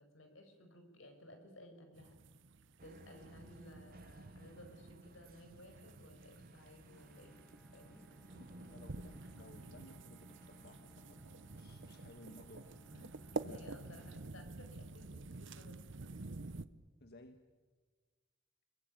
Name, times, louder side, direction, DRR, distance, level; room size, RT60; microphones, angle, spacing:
voice 1, 0.0-2.1 2.8-7.4 7.7-8.0 13.5-15.8, left 1 dB, 80° left, 5 dB, 5.5 m, -57 dB
sound 1, 1.9-16.6, right 3 dB, 65° right, 0.9 m, -50 dB
sound 2, 2.8-12.6, right 1 dB, 50° right, 1.3 m, -59 dB
Bowed string instrument, 6.8-15.0, equal, ahead, 0.9 m, -64 dB
voice 2, 8.3-14.0 17.0-17.4, left 1 dB, 55° left, 6 dB, 1.5 m, -59 dB
25.5 x 22.0 x 9.0 m, 1.4 s
head